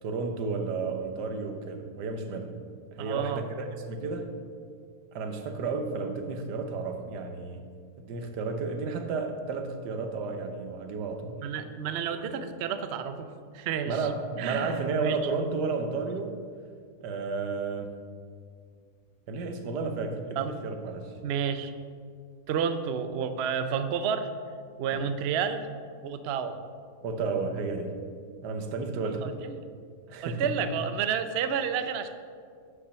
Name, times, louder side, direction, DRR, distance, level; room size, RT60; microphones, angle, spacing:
voice 1, 0.0-2.6 2.9-4.3 5.1-7.6 8.0-11.4 13.9-16.4 17.0-17.9 19.3-21.1 24.9-25.0 27.0-28.0 28.4-29.3 30.1-30.5, right 4 dB, 90° right, 5 dB, 1.5 m, -32 dB
voice 2, 3.0-3.4 11.4-14.0 14.4-15.2 20.4-20.5 21.2-21.7 22.5-24.3 24.8-25.7 26.0-26.6 29.2-29.6 30.2-32.1, right 7 dB, 65° right, 9 dB, 0.6 m, -30 dB
7.8 x 6.1 x 6.8 m, 2.2 s
omnidirectional pair, 1.7 m